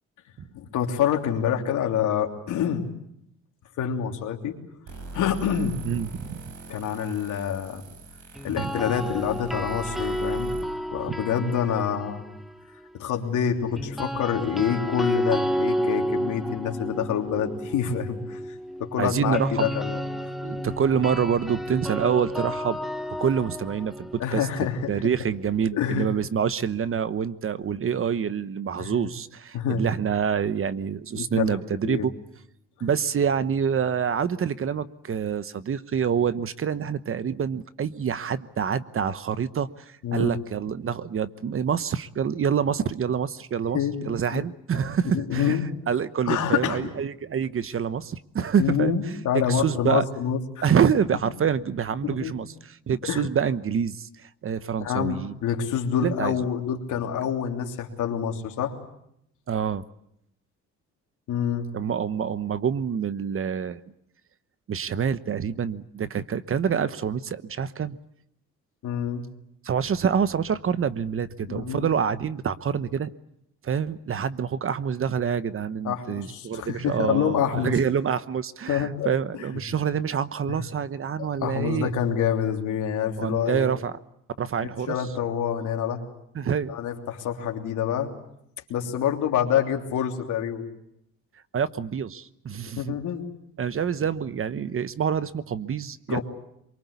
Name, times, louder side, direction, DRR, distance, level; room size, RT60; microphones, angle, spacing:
voice 1, 0.5-2.8 3.8-4.5 5.1-5.7 6.7-7.8 8.4-10.5 10.9-12.2 12.9-18.4 18.8-20.0 24.2-24.8 25.7-26.1 28.8-28.9 29.5-29.9 31.2-31.6 31.8-32.1 40.0-40.3 43.7-44.4 45.1-45.7 46.3-46.9 48.6-50.6 52.0-52.3 53.1-53.2 54.8-58.7 61.3-61.7 68.8-69.2 71.5-71.9 75.8-77.7 78.7-79.4 80.5-80.6 81.2-83.7 84.6-86.0 86.7-88.1 88.7-90.6 92.7-93.3 96.1-96.2, left 8 dB, 80° left, 3 dB, 3.2 m, -27 dB
sound 1, 4.9-10.6, right 2 dB, 80° right, 7.3 m, -41 dB
voice 2, 5.8-6.4 8.5-8.7 11.1-11.2 19.0-19.7 20.4-22.8 23.2-24.5 24.9-32.1 32.8-45.6 45.9-49.0 49.5-50.0 50.6-55.3 56.0-56.4 59.5-59.8 61.7-63.8 64.7-68.0 69.6-73.1 73.6-81.9 83.2-84.0 84.4-84.9 86.3-86.7 91.5-93.0 93.6-96.2, right 7 dB, 45° right, 14 dB, 1.0 m, -26 dB
sound 2, 8.4-12.5 13.8-25.6, equal, ahead, 1.5 m, -31 dB
23.5 x 23.0 x 8.3 m, 0.76 s
cardioid pair, 90°, 30 cm